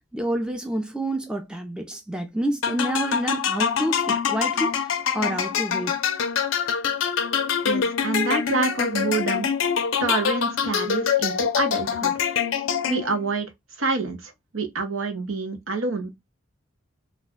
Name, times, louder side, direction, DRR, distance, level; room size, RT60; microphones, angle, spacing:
voice 1, 0.1-4.9 5.1-6.0, right 1 dB, 5° right, 0.4 m, -28 dB
sound 1, 2.6-13.3, left 7 dB, 75° left, 0.5 m, -25 dB
voice 2, 7.6-9.5 10.0-12.1 12.9-13.5 13.8-16.1, right 3 dB, 85° right, 0.8 m, -27 dB
2.3 x 2.1 x 3.5 m
head